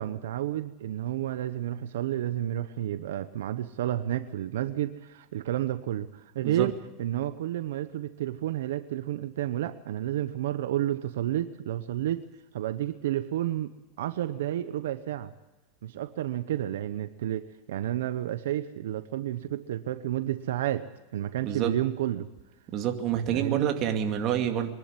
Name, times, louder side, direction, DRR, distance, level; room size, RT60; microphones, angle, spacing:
voice 1, 0.0-12.2 12.5-13.7 14.0-15.3 15.8-20.9 21.1-22.3 23.3-23.7, right 12 dB, 85° right, 11 dB, 0.9 m, -31 dB
voice 2, 21.4-21.7 22.7-24.7, right 9 dB, 40° right, 5 dB, 2.3 m, -28 dB
23.0 x 12.0 x 9.7 m, 1.1 s
supercardioid pair, 145°, 0 cm